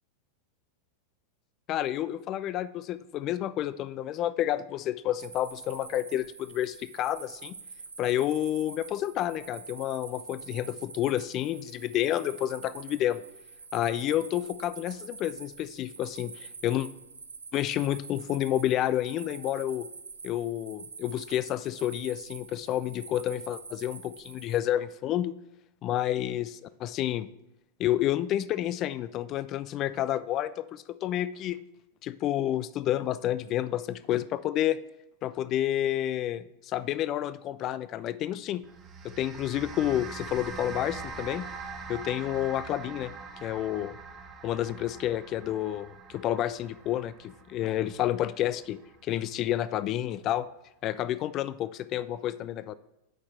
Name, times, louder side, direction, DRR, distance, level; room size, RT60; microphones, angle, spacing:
voice 1, 1.7-7.5 8.0-13.2 13.7-16.9 17.5-19.9 20.2-25.3 25.8-27.3 27.8-31.6 32.0-34.8 35.2-38.6 39.0-41.5 41.9-43.1 43.4-43.9 44.4-50.5 50.8-52.7, left 12 dB, 35° left, 15 dB, 0.3 m, -30 dB
sound 1, 5.1-24.6, right 4 dB, 75° right, 0.7 m, -46 dB
sound 2, 38.6-49.2, right 4 dB, 25° right, 0.9 m, -43 dB
8.7 x 5.6 x 4.3 m, 0.88 s
figure-of-eight pair, 90°, 0 cm